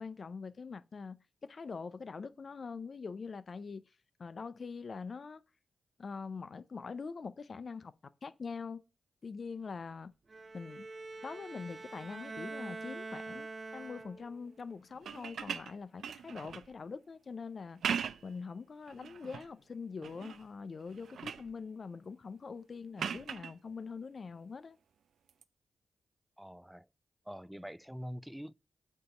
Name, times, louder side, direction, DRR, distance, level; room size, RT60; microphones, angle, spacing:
voice 1, 0.0-3.9 4.2-5.4 6.0-7.9 8.2-8.8 9.2-10.1 10.5-10.9 11.2-17.8 18.2-24.8, left 5 dB, 60° left, 0.5 m, -43 dB
Bowed string instrument, 10.3-14.5, right 3 dB, 45° right, 0.7 m, -45 dB
sound 1, 14.9-16.7 17.6-18.4 18.9-19.5 20.0-20.5 20.8-21.5 23.0-23.5 25.3-25.4, right 7 dB, 80° right, 0.4 m, -39 dB
voice 2, 26.4-26.9 27.3-28.5, equal, 5° right, 0.3 m, -44 dB
8.1 x 2.9 x 5.4 m
supercardioid pair, 45°, 0 cm